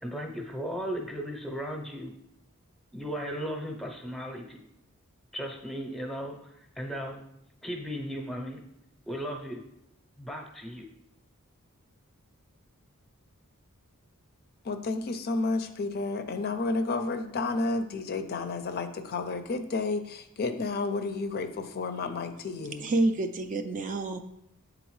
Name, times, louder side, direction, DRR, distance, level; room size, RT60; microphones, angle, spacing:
voice 1, 0.0-2.1 2.9-4.6 5.3-7.2 7.6-8.6 9.1-9.6 10.2-10.9, equal, ahead, 2 dB, 0.7 m, -36 dB
voice 2, 14.6-22.9, left 3 dB, 45° left, 8 dB, 0.4 m, -31 dB
voice 3, 22.8-24.2, right 2 dB, 35° right, 7 dB, 0.3 m, -28 dB
7.8 x 3.8 x 3.1 m, 0.78 s
head